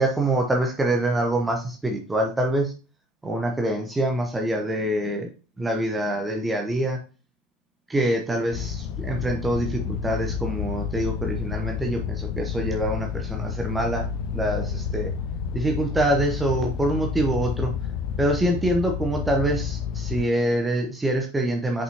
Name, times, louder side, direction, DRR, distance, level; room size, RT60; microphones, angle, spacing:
voice 1, 0.0-2.7 3.2-5.3 5.6-7.0 7.9-14.1 14.3-15.1 15.5-17.7 18.2-21.8, right 1 dB, 10° right, 2 dB, 0.9 m, -25 dB
sound 1, 8.5-20.2, left 7 dB, 50° left, 0.5 m, -30 dB
6.2 x 5.4 x 2.8 m, 0.34 s
figure-of-eight pair, 80°, 0 cm